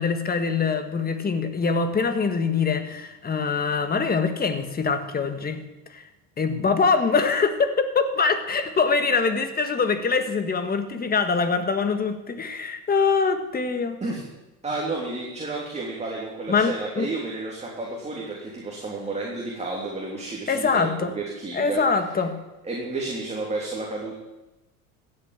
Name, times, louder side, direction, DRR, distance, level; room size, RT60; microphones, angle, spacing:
voice 1, 0.0-5.6 5.9-6.0 6.4-14.0 16.5-17.1 20.5-21.1 21.5-22.4, left 5 dB, 20° left, 8 dB, 1.7 m, -24 dB
voice 2, 14.6-21.8 22.6-24.1, right 2 dB, 15° right, -3 dB, 3.2 m, -31 dB
15.0 x 8.1 x 8.9 m, 1.0 s
supercardioid pair, 110°, 41 cm